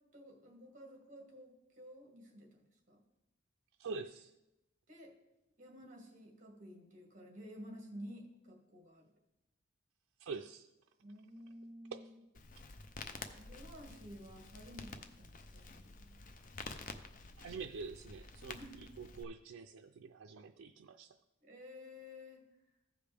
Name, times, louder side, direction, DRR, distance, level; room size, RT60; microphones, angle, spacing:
voice 1, 0.1-2.6 2.9-3.0 4.9-5.1 5.6-9.1 11.0-12.2 13.4-16.2 18.4-18.9 21.4-22.4, equal, 40° right, 2 dB, 1.7 m, -52 dB
voice 2, 3.8-4.3 10.2-10.7 11.9-12.0 17.4-21.1, right 4 dB, 80° right, 5 dB, 0.4 m, -46 dB
Crackle, 12.3-19.2, left 3 dB, 40° left, 0.5 m, -50 dB
15.0 x 5.0 x 3.4 m, 0.91 s
head